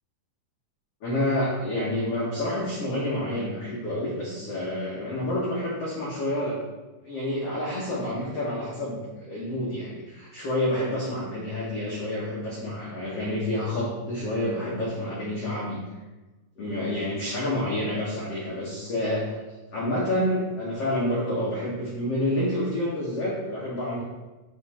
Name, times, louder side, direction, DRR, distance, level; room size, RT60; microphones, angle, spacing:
voice 1, 1.0-6.6 7.0-15.8 16.6-19.4 19.7-24.0, left 1 dB, 90° left, -6 dB, 1.3 m, -28 dB
6.9 x 3.9 x 4.3 m, 1.1 s
omnidirectional pair, 4.8 m